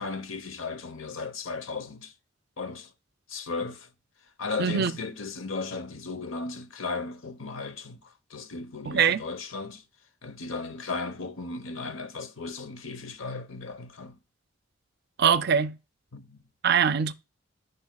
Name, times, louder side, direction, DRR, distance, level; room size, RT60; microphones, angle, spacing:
voice 1, 0.0-2.1 2.6-2.9 3.3-3.9 4.4-9.8 10.2-14.2 16.1-16.5, left 4 dB, 85° left, 1.0 m, -36 dB
voice 2, 4.6-4.9 8.9-9.2 15.2-15.8 16.6-17.1, right 7 dB, 55° right, 0.5 m, -22 dB
13.5 x 5.3 x 2.3 m
head